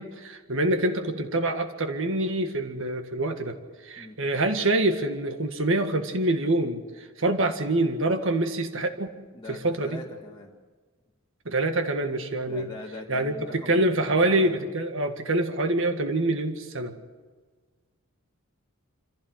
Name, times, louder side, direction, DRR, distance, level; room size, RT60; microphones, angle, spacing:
voice 1, 0.0-3.6 3.8-9.1 9.5-10.0 11.5-12.7 13.1-17.0, right 2 dB, 65° right, 6 dB, 1.9 m, -26 dB
voice 2, 9.3-10.5 12.5-13.9 14.2-14.6, left 2 dB, 20° left, -3 dB, 2.0 m, -42 dB
26.5 x 15.5 x 8.0 m, 1.5 s
head